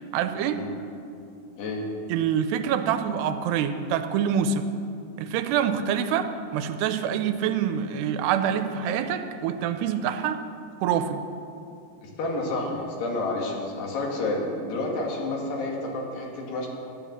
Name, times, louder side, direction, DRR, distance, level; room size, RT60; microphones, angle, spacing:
voice 1, 0.1-0.6 2.1-4.7 5.2-10.4 10.8-11.2, right 8 dB, 90° right, 9 dB, 2.7 m, -26 dB
voice 2, 12.0-16.7, left 2 dB, 75° left, -1 dB, 4.0 m, -30 dB
13.5 x 10.0 x 7.3 m, 2.6 s
omnidirectional pair, 4.8 m